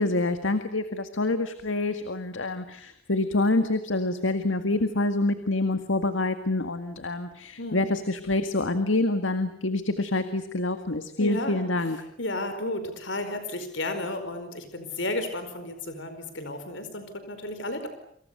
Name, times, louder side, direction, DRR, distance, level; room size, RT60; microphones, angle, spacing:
voice 1, 0.0-12.0, left 2 dB, 90° left, 9 dB, 1.9 m, -26 dB
voice 2, 7.6-7.9 11.2-17.9, left 2 dB, 70° left, 8 dB, 4.7 m, -33 dB
29.0 x 27.0 x 6.9 m, 0.66 s
head